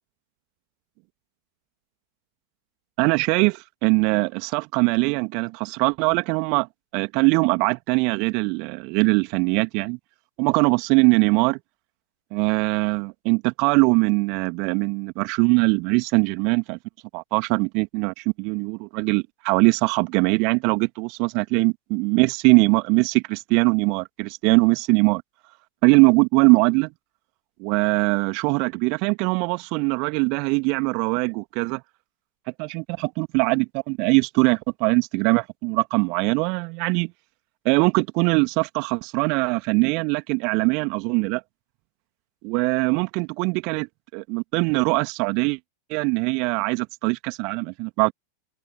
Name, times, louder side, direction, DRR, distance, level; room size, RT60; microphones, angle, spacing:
voice 1, 3.0-6.7 6.9-10.0 10.4-11.6 12.3-16.8 17.1-25.2 25.8-26.9 27.6-31.8 32.6-37.1 37.7-41.4 42.4-45.6 45.9-48.1, right 32 dB, 45° right, 1.9 m, -21 dB
figure-of-eight pair, 90°, 0 cm